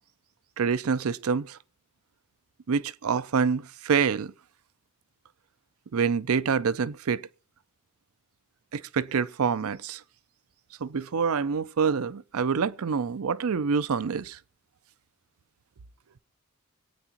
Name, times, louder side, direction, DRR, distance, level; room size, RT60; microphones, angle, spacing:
voice 1, 0.6-1.6 2.7-4.3 5.9-7.2 8.7-10.0 10.8-14.4, right 6 dB, 75° right, 0.5 m, -26 dB
25.0 x 9.1 x 2.9 m
head